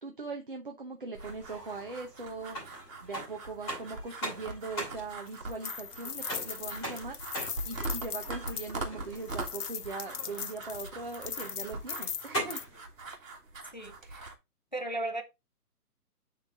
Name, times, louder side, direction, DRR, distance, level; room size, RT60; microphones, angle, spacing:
voice 1, 0.0-2.6 3.0-7.2 7.7-12.6, right 3 dB, 35° right, 0.7 m, -40 dB
sound 1, 1.1-14.3, right 2 dB, 55° right, 2.2 m, -42 dB
sound 2, 1.2-12.8, right 1 dB, 10° left, 2.6 m, -42 dB
sound 3, 5.3-8.7 9.2-12.7, left 7 dB, 65° left, 0.9 m, -39 dB
voice 2, 13.7-14.3 14.7-15.2, right 2 dB, 30° left, 0.6 m, -36 dB
9.3 x 3.8 x 3.9 m
hypercardioid pair, 175°, 48 cm